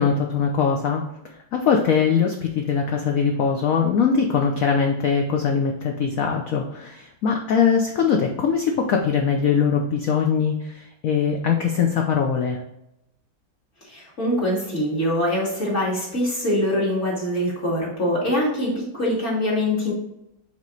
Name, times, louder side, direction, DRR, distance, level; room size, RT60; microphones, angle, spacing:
voice 1, 0.0-12.6, left 6 dB, 65° left, 2 dB, 0.9 m, -22 dB
voice 2, 13.9-19.9, left 1 dB, 35° left, -5 dB, 2.7 m, -23 dB
7.3 x 3.8 x 3.8 m, 0.86 s
omnidirectional pair, 2.0 m